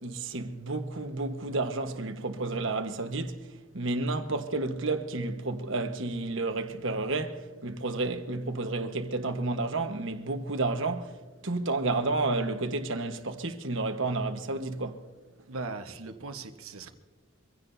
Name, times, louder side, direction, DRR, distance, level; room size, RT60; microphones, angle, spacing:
voice 1, 0.0-3.5 3.7-11.2 11.4-15.0, right 2 dB, 60° right, 1.3 m, -31 dB
voice 2, 15.5-16.9, right 3 dB, 80° right, 1.3 m, -39 dB
25.0 x 16.0 x 2.7 m
head